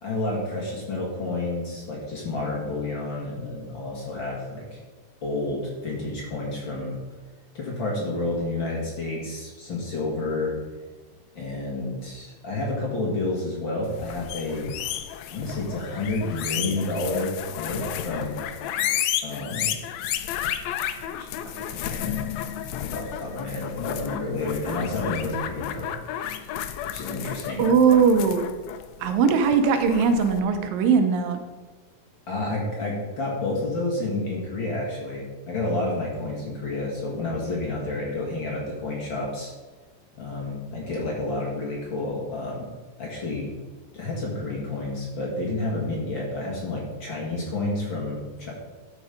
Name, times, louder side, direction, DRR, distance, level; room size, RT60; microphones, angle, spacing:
voice 1, 0.0-4.8 5.2-7.0 7.5-10.5 11.3-14.7 15.3-18.4 19.2-19.7 20.7-22.2 22.8-25.9 26.9-27.6 32.3-39.5 40.2-42.7 43.0-43.5 43.9-48.5, left 2 dB, 40° left, -3 dB, 2.0 m, -30 dB
sound 1, 13.9-30.4, left 10 dB, 90° left, 1.6 m, -32 dB
voice 2, 27.6-28.5 29.0-31.4, right 5 dB, 90° right, 7 dB, 2.6 m, -20 dB
12.5 x 5.4 x 5.2 m, 1.3 s
omnidirectional pair, 3.9 m